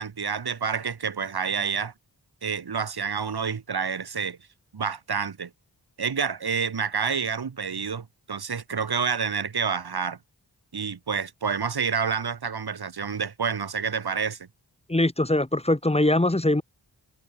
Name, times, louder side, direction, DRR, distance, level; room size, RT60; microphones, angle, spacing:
voice 1, 0.0-1.9 2.4-4.4 4.7-5.5 6.0-10.2 10.7-14.5, right 6 dB, 65° right, 2.7 m, -28 dB
voice 2, 14.9-16.6, left 1 dB, 15° left, 2.1 m, -22 dB
wide cardioid pair, 95°, 41 cm